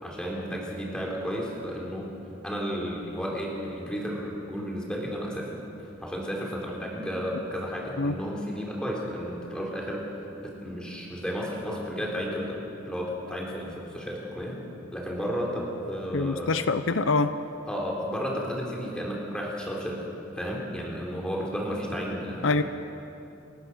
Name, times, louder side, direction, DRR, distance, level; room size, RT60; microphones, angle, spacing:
voice 1, 0.0-2.1 2.4-5.5 6.0-10.0 10.4-12.6 12.8-14.6 14.9-16.7 17.6-20.0 20.3-22.6, equal, 5° left, -3 dB, 3.9 m, -33 dB
voice 2, 16.1-17.3 22.4-22.6, left 3 dB, 75° left, 11 dB, 0.7 m, -25 dB
30.0 x 14.0 x 6.3 m, 2.8 s
head